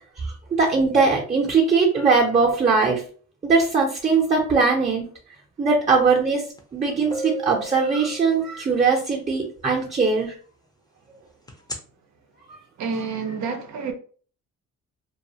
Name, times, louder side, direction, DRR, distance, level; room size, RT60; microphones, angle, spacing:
voice 1, 0.2-3.0 3.4-5.0 5.6-6.4 6.7-10.4, right 4 dB, 25° right, 0.7 m, -20 dB
sound 1, 6.6-6.7 7.1-8.8 11.5-11.8, right 2 dB, 15° left, 0.6 m, -34 dB
voice 2, 12.8-13.9, right 5 dB, 70° right, 0.6 m, -28 dB
2.3 x 2.3 x 2.8 m
cardioid pair, 90°, 30 cm